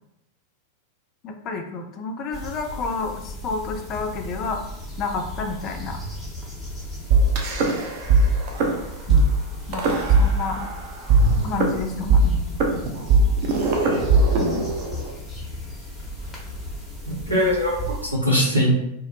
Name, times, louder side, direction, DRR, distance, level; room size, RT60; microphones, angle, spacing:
voice 1, 1.2-4.6 5.0-6.0 9.1-9.3 9.7-9.8 10.2-10.7 11.4-12.4 14.4-14.6, left 4 dB, 35° left, 5 dB, 0.3 m, -30 dB
sound 1, 2.3-18.1, left 1 dB, 5° left, 0.7 m, -36 dB
sound 2, 7.1-8.2 8.5-8.7 9.1-9.2 9.7-10.7 11.1-15.1, right 4 dB, 45° right, 0.4 m, -19 dB
voice 2, 17.1-18.7, equal, 90° right, -4 dB, 0.7 m, -22 dB
2.2 x 2.0 x 2.8 m, 0.85 s
figure-of-eight pair, 90°, 0 cm